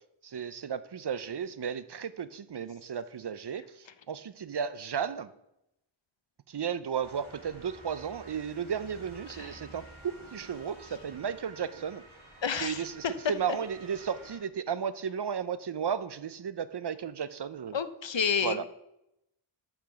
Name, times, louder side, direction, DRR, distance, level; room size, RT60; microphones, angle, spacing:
voice 1, 0.2-5.3 6.5-12.0 12.6-17.8 18.4-18.6, right 7 dB, 55° right, 15 dB, 0.5 m, -34 dB
Motor vehicle (road) / Siren, 7.0-14.4, right 2 dB, 70° right, 2.3 m, -51 dB
voice 2, 12.4-12.8 17.7-18.7, left 6 dB, 60° left, 12 dB, 0.7 m, -30 dB
6.6 x 5.9 x 7.0 m, 0.86 s
wide cardioid pair, 45°, 49 cm